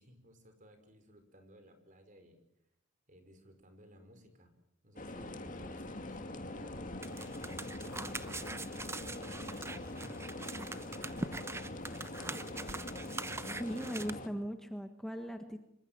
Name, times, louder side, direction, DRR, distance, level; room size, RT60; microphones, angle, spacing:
voice 1, 0.0-2.4 3.1-4.5 4.8-6.8 7.5-11.7 12.1-12.8, equal, 40° right, 7 dB, 5.2 m, -59 dB
sound 1, 5.0-14.3, left 1 dB, 40° left, 2.3 m, -43 dB
sound 2, 7.0-14.1, right 3 dB, 15° right, 0.9 m, -43 dB
voice 2, 13.4-15.6, equal, ahead, 6 dB, 1.4 m, -39 dB
26.0 x 24.0 x 7.5 m, 0.79 s
head